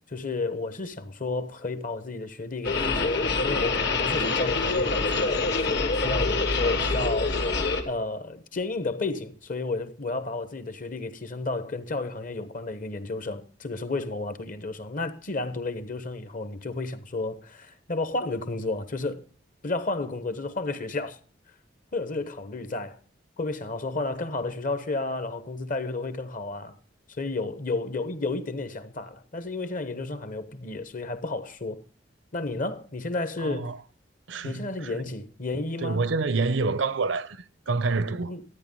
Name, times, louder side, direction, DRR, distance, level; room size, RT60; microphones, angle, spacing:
voice 1, 0.1-19.2 19.6-21.2 21.9-23.0 23.4-26.8 27.1-31.8 32.3-33.7 34.4-36.0 38.3-38.4, left 3 dB, 45° left, 1.1 m, -32 dB
sound 1, 2.6-7.8, left 3 dB, 65° left, 2.0 m, -25 dB
voice 2, 33.4-33.8 34.3-34.9 35.8-38.3, right 3 dB, 80° right, 0.7 m, -27 dB
13.0 x 9.3 x 5.4 m
head